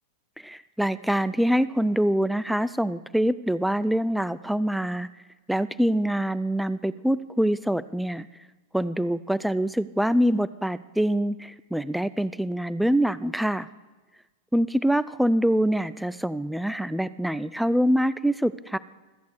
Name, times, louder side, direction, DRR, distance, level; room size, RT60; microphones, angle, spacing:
voice 1, 0.4-5.1 5.5-8.3 8.7-13.7 14.5-18.8, equal, ahead, 15 dB, 0.3 m, -25 dB
14.5 x 8.2 x 7.8 m, 1.2 s
figure-of-eight pair, 90°, 0 cm